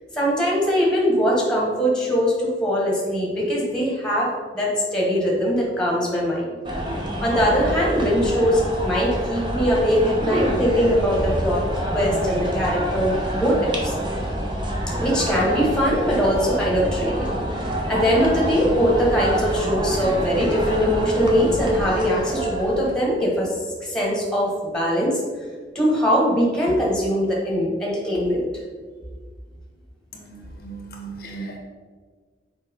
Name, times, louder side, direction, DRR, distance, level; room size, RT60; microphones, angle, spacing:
voice 1, 0.1-6.4 7.2-13.9 15.0-17.3 17.9-23.5 23.8-25.2 25.7-28.4, equal, 5° left, -4 dB, 1.5 m, -21 dB
sound 1, 6.6-22.9, equal, 25° right, 0.9 m, -27 dB
voice 2, 30.1-31.6, right 3 dB, 55° left, 2 dB, 0.8 m, -37 dB
6.6 x 4.6 x 3.7 m, 1.5 s
head